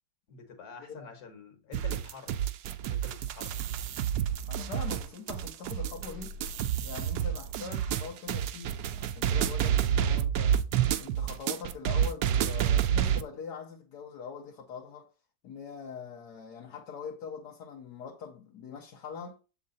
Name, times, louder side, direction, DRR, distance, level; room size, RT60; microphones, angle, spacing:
voice 1, 0.3-2.3 2.8-3.6, left 5 dB, 70° left, 1.9 m, -47 dB
sound 1, 1.7-13.2, right 9 dB, 80° right, 1.1 m, -29 dB
voice 2, 4.4-6.4 6.8-10.6 11.0-15.1 15.4-19.4, left 6 dB, 85° left, 1.5 m, -43 dB
7.4 x 3.8 x 3.9 m
omnidirectional pair, 1.7 m